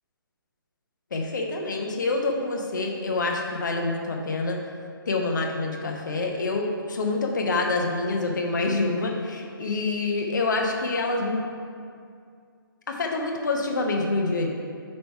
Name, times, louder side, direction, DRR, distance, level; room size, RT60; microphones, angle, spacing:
voice 1, 1.1-4.6 5.1-11.4 12.9-14.5, left 3 dB, 55° left, 1 dB, 1.0 m, -26 dB
9.7 x 3.3 x 4.7 m, 2.3 s
figure-of-eight pair, 135°, 12 cm